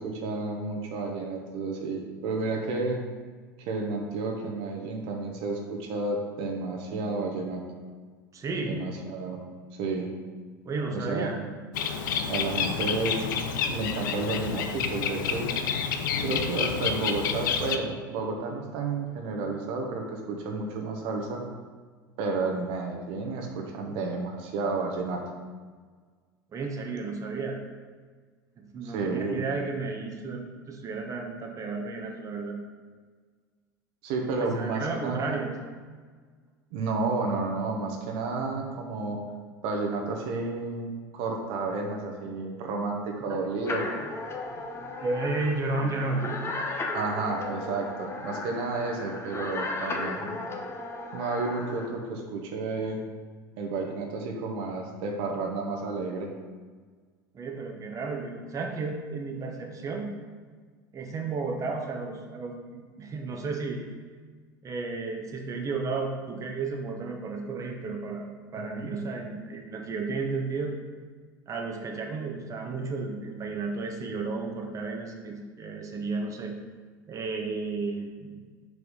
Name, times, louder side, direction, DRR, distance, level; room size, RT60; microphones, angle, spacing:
voice 1, 0.0-3.0 3.6-7.6 8.7-9.4 9.7-10.1 10.9-11.5 12.3-13.4 13.7-15.5 16.2-21.4 22.2-25.2 28.8-29.4 34.0-35.4 36.7-39.2 39.6-43.9 46.9-50.4 51.1-53.0 53.6-56.3 68.7-68.9, right 3 dB, 60° right, 1 dB, 1.1 m, -31 dB
voice 2, 8.3-8.9 10.6-11.4 26.5-27.6 28.6-32.6 34.4-35.5 43.3-46.3 57.3-60.1 60.9-63.8 64.6-70.7 71.5-76.5 77.1-78.4, right 3 dB, 30° right, 1 dB, 1.0 m, -33 dB
Bird, 11.7-17.8, left 7 dB, 75° left, 0.5 m, -29 dB
sound 1, 43.7-51.9, left 2 dB, 25° left, 1.0 m, -35 dB
4.9 x 4.7 x 5.4 m, 1.5 s
hypercardioid pair, 80°, 11 cm